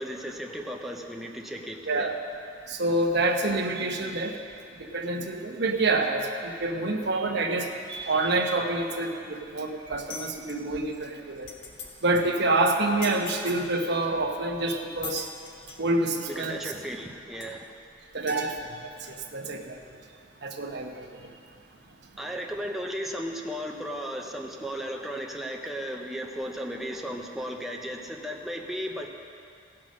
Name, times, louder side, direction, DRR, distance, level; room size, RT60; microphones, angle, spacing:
voice 1, 0.0-2.1 16.3-17.7 22.2-29.1, equal, ahead, 0 dB, 0.8 m, -35 dB
voice 2, 1.9-2.2 2.7-4.3 4.9-11.5 12.0-15.3 15.8-16.6 18.1-19.8 20.4-20.9, right 2 dB, 60° right, 2 dB, 1.0 m, -27 dB
sound 1, 10.1-10.5 11.1-11.2 11.4-11.9 12.2-12.3 13.0-13.6 14.3-14.4 15.0-15.8 16.8-16.9 17.4-17.5 18.3-18.5, left 5 dB, 70° left, 1.3 m, -40 dB
16.0 x 6.1 x 6.3 m, 2.4 s
head